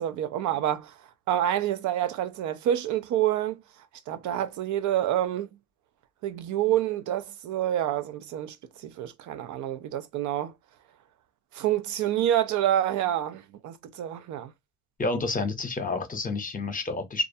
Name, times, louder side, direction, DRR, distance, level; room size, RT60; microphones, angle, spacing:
voice 1, 0.0-3.6 4.1-5.5 6.2-10.5 11.5-14.5, right 11 dB, 75° right, 0.4 m, -28 dB
voice 2, 15.0-17.3, left 3 dB, 25° left, 0.7 m, -29 dB
2.4 x 2.2 x 2.6 m
cardioid pair, 90°, 30 cm